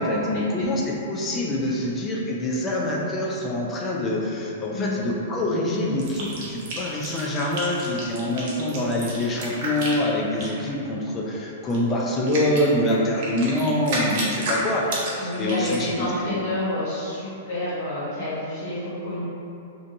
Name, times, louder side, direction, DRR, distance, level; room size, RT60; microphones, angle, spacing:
voice 1, 0.0-16.4, left 1 dB, 20° left, -3 dB, 0.4 m, -25 dB
sound 1, 6.0-10.6 11.7-11.8 12.3-15.9, right 1 dB, 50° right, 0.7 m, -31 dB
voice 2, 15.2-19.2, left 1 dB, 65° left, -12 dB, 0.9 m, -29 dB
2.5 x 2.3 x 2.6 m, 2.7 s
hypercardioid pair, 125°, 0 cm